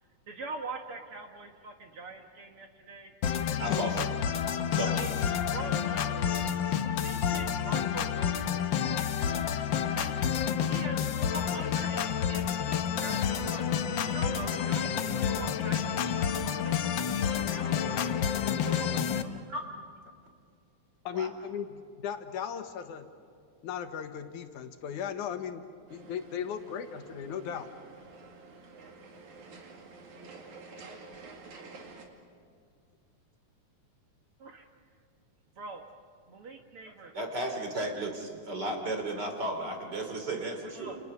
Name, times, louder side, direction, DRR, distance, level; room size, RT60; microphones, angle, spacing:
voice 1, 0.3-3.1 4.8-5.2 5.4-6.4 6.9-9.1 9.8-10.2 10.7-13.7 14.0-17.8 18.6-19.4 34.4-34.7 35.5-35.9 36.3-37.1 40.7-41.0, right 3 dB, 55° right, 4 dB, 2.0 m, -43 dB
sound 1, 3.2-19.2, left 8 dB, 70° left, 1.1 m, -29 dB
voice 2, 3.6-4.0 4.7-5.0 10.6-10.7 19.5-19.6 21.1-21.3 37.1-41.0, right 1 dB, 35° right, 4 dB, 3.3 m, -34 dB
voice 3, 21.0-23.1 23.6-25.7 25.9-27.7, left 8 dB, 85° left, 7 dB, 2.8 m, -37 dB
sound 2, 25.9-32.1, right 3 dB, 75° right, 3.8 m, -49 dB
30.0 x 29.0 x 6.8 m, 2.3 s
omnidirectional pair, 3.4 m